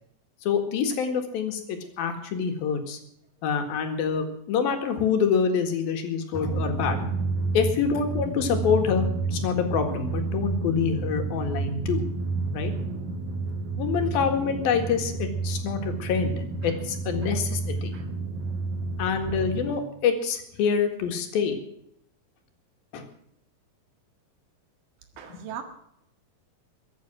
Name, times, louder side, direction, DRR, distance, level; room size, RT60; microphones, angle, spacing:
voice 1, 0.4-3.0 3.4-7.1 7.5-12.0 12.5-12.7 13.8-17.9 19.0-21.6 22.9-23.1 25.3-25.6, left 6 dB, 85° left, 5 dB, 3.7 m, -26 dB
Drum, 6.3-19.8, right 3 dB, 60° right, 3.0 m, -30 dB
voice 2, 25.2-25.6, right 8 dB, 75° right, 6 dB, 3.5 m, -38 dB
22.5 x 8.9 x 6.1 m, 0.74 s
omnidirectional pair, 4.1 m